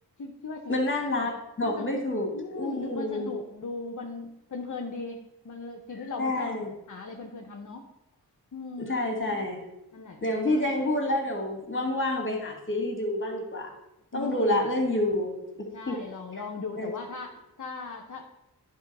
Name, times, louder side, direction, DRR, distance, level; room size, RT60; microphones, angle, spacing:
voice 1, 0.2-0.8 1.2-2.0 2.3-6.5 6.9-7.8 8.5-9.0 9.9-10.6 14.1-14.7 15.7-17.3 17.6-18.3, left 3 dB, 50° left, 1 dB, 0.9 m, -38 dB
voice 2, 0.7-3.3 6.2-6.7 8.9-9.6 10.2-13.7 14.1-16.0 16.8-16.9, left 1 dB, 30° left, 2 dB, 2.1 m, -28 dB
10.5 x 3.7 x 5.3 m, 0.89 s
wide cardioid pair, 80°, 39 cm